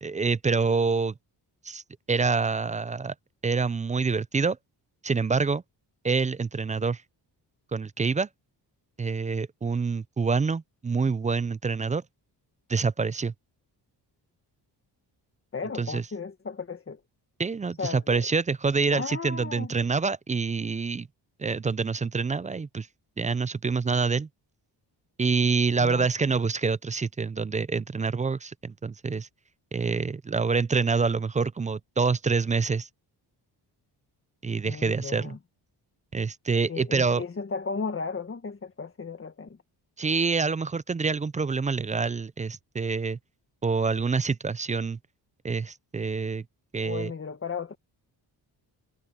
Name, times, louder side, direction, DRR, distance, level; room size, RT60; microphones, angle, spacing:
voice 1, 0.0-1.1 1.6-1.8 2.1-3.1 3.4-4.6 5.0-5.6 6.0-7.0 7.7-8.3 9.0-12.0 12.7-13.3 15.8-16.0 17.4-21.1 21.4-22.9 23.2-24.3 25.2-29.3 29.7-32.9 34.4-35.3 36.1-37.2 40.0-43.2 43.6-45.0 45.4-46.4 46.7-47.1, right 4 dB, 20° right, 0.4 m, -26 dB
voice 2, 15.5-17.0 17.8-18.3 18.9-19.7 25.8-26.4 34.6-35.4 36.7-39.6 46.8-47.8, left 5 dB, 30° left, 1.7 m, -35 dB
cardioid pair, 115°, 42 cm